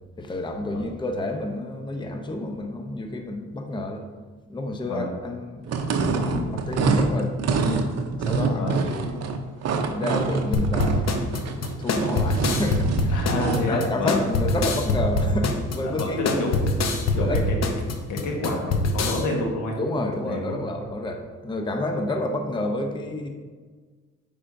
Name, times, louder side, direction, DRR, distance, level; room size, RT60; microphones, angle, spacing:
voice 1, 0.2-4.0 4.5-5.6 6.0-7.9 8.1-9.3 9.8-11.1 11.8-16.3 17.2-17.4 19.8-23.3, left 1 dB, 15° left, 3 dB, 0.7 m, -30 dB
sound 1, 5.6-13.7, right 4 dB, 55° right, 0.7 m, -26 dB
sound 2, 10.5-19.2, left 2 dB, 60° left, 0.8 m, -24 dB
voice 2, 13.1-14.2 15.8-16.6 17.1-17.6 18.1-19.8 20.1-20.6, left 2 dB, 80° left, 0 dB, 1.5 m, -28 dB
8.4 x 5.1 x 2.6 m, 1.4 s
cardioid pair, 90°, 30 cm